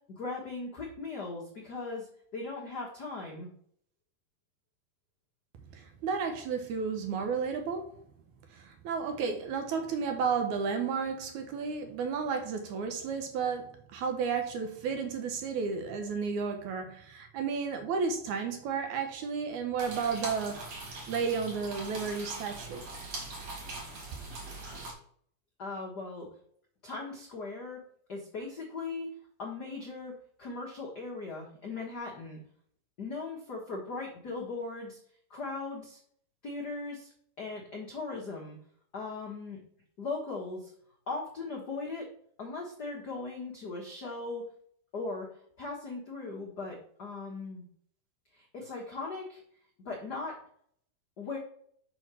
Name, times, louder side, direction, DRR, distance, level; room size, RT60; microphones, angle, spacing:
voice 1, 0.2-2.1 2.3-3.5 25.6-26.3 26.8-27.8 28.1-29.1 29.4-32.4 33.0-35.0 35.3-36.0 36.4-37.1 37.4-38.6 38.9-39.6 40.0-40.7 41.1-42.1 42.4-44.4 44.9-45.3 45.6-47.7 48.3-49.4 49.8-50.4 51.2-51.4, left 3 dB, 80° left, 0.9 m, -38 dB
voice 2, 5.7-7.9 8.5-20.7 21.1-22.9, right 5 dB, 70° right, 1.9 m, -32 dB
sound 1, 19.8-24.9, right 2 dB, 55° right, 2.7 m, -41 dB
6.2 x 4.4 x 6.1 m
omnidirectional pair, 4.2 m